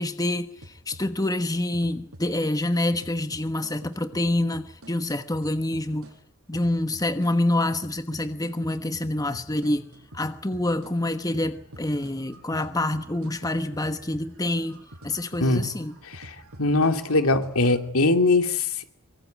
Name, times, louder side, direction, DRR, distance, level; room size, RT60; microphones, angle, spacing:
voice 1, 0.0-6.1 6.5-16.0, left 1 dB, 15° left, 10 dB, 1.2 m, -27 dB
sound 1, 0.6-1.3 1.7-6.1 6.5-17.8, right 1 dB, 80° right, 8.0 m, -47 dB
voice 2, 16.1-18.8, left 2 dB, 75° left, 8 dB, 2.8 m, -22 dB
24.5 x 24.0 x 9.2 m, 0.65 s
head